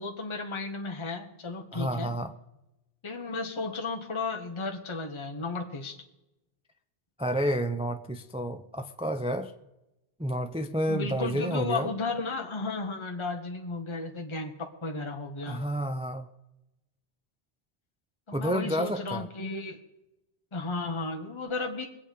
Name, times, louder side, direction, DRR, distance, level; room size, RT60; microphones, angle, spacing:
voice 1, 0.0-2.1 3.0-6.0 10.9-15.6 18.3-19.8 20.5-21.9, left 3 dB, 30° left, 3 dB, 1.2 m, -34 dB
voice 2, 1.7-2.3 7.2-9.5 10.2-11.9 15.5-16.3 18.3-19.3, equal, 10° right, 7 dB, 0.4 m, -30 dB
22.0 x 8.1 x 5.1 m, 0.95 s
omnidirectional pair, 1.0 m